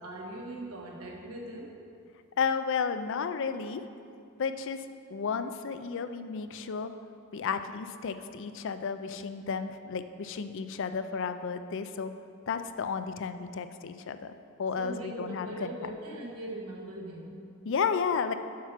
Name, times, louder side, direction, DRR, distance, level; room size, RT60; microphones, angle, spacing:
voice 1, 0.0-1.8 14.8-17.3, right 1 dB, 90° right, -1 dB, 1.5 m, -40 dB
voice 2, 2.4-3.8 4.4-4.8 5.1-6.9 7.3-12.1 12.5-15.7 17.6-18.3, left 5 dB, 60° left, 10 dB, 0.4 m, -32 dB
7.4 x 5.8 x 5.8 m, 2.4 s
head